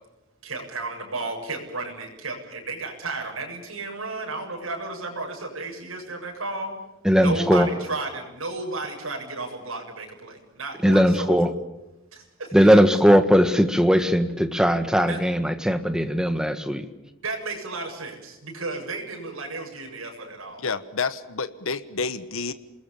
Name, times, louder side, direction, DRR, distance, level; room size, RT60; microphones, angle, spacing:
voice 1, 0.4-6.7 7.1-11.5 12.1-12.8 15.1-15.2 17.2-20.7, right 3 dB, 85° right, 1 dB, 7.4 m, -33 dB
voice 2, 7.0-7.7 10.8-11.5 12.5-16.9, equal, 5° right, 9 dB, 1.6 m, -19 dB
voice 3, 20.6-22.5, left 4 dB, 85° left, 12 dB, 1.3 m, -29 dB
28.0 x 21.0 x 7.4 m, 1.0 s
head